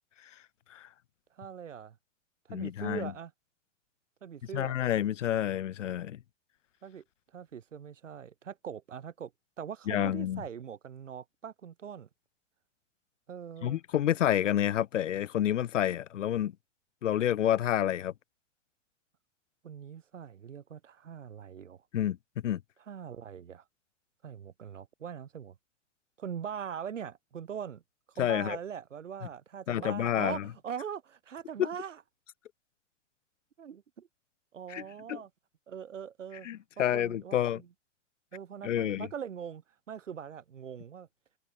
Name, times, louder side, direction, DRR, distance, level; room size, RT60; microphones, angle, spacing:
voice 1, 1.4-2.0 2.5-3.3 4.2-4.8 6.8-7.0 7.3-9.3 9.6-12.1 13.3-13.8 19.6-21.8 22.9-23.6 24.2-25.5 26.2-27.8 28.2-32.0 33.6-34.1 34.5-35.3 35.7-36.5 36.8-37.7 38.3-41.1, right 8 dB, 90° right, 1.6 m, -41 dB
voice 2, 2.5-3.1 4.5-6.2 9.9-10.4 13.6-16.5 17.0-18.1 21.9-22.2 22.4-22.6 28.2-28.6 29.7-30.4 31.6-31.7 34.7-34.8 35.1-35.2 36.4-37.6 38.6-39.1, left 11 dB, 85° left, 0.7 m, -29 dB
hypercardioid pair, 120°, 36 cm